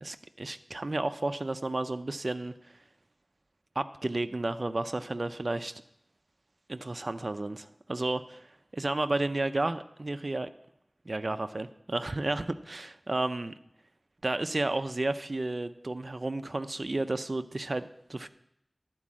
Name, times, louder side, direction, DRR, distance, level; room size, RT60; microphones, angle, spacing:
voice 1, 0.0-2.5 3.8-5.8 6.7-8.4 8.7-10.5 11.1-13.5 14.2-18.3, right 2 dB, 55° right, 9 dB, 0.5 m, -32 dB
11.5 x 4.6 x 7.3 m, 0.77 s
wide cardioid pair, 55°, 0 cm